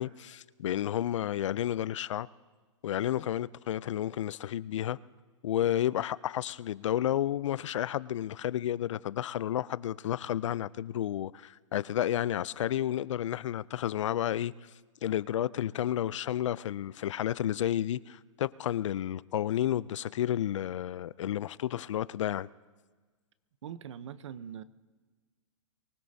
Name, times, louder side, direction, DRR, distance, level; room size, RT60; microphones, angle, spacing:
voice 1, 0.0-2.3 2.8-5.0 5.4-14.5 15.0-22.5, left 11 dB, 70° left, 0.4 m, -31 dB
voice 2, 23.6-24.6, right 9 dB, 65° right, 0.7 m, -42 dB
24.0 x 16.5 x 2.7 m
hypercardioid pair, 140°, 16 cm